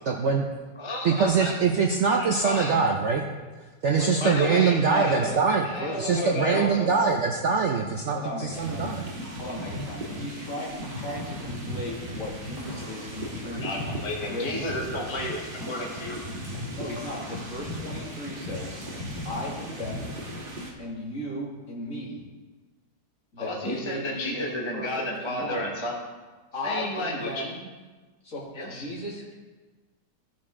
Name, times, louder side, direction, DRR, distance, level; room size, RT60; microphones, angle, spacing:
voice 1, 0.1-0.4 1.0-3.2 3.8-5.7 6.0-9.1, right 5 dB, 60° right, 1 dB, 0.8 m, -23 dB
voice 2, 0.8-1.5 2.1-2.8 4.2-6.9 13.5-16.2 23.4-25.9 26.6-27.4 28.5-28.9, left 1 dB, 20° left, -1 dB, 0.9 m, -32 dB
voice 3, 3.9-5.4 5.7-7.1 8.1-8.9 9.4-13.8 14.3-14.5 16.7-18.9 19.2-20.1 20.8-22.2 23.3-25.7 26.5-27.6 28.2-29.3, left 1 dB, 50° left, -6 dB, 2.7 m, -36 dB
sound 1, 8.5-20.7, equal, 30° right, 1.5 m, -36 dB
15.0 x 6.0 x 3.7 m, 1.3 s
omnidirectional pair, 1.9 m